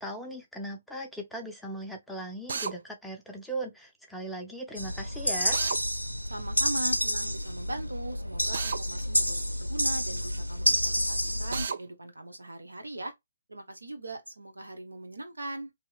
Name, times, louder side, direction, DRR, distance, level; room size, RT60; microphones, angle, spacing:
voice 1, 0.0-5.6, right 1 dB, ahead, 0.6 m, -38 dB
Drill, 2.5-2.7 5.5-5.8 8.5-8.8 11.5-11.8, right 5 dB, 55° right, 0.3 m, -32 dB
sound 1, 4.8-11.7, equal, 90° left, 0.5 m, -29 dB
voice 2, 6.2-13.1 13.5-15.7, right 1 dB, 75° right, 0.9 m, -39 dB
2.8 x 2.8 x 2.2 m
figure-of-eight pair, 130°, 0 cm